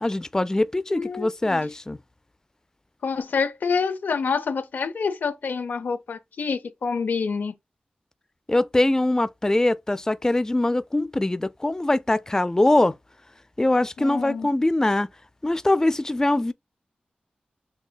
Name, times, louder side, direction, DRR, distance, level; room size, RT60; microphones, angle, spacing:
voice 1, 0.0-2.0 8.5-12.9 13.6-15.1 15.4-16.5, left 2 dB, 20° left, 0.4 m, -22 dB
voice 2, 0.9-1.7 3.0-7.5 14.0-14.5, left 5 dB, 80° left, 0.5 m, -27 dB
6.4 x 2.6 x 2.2 m
cardioid pair, 45°, 3 cm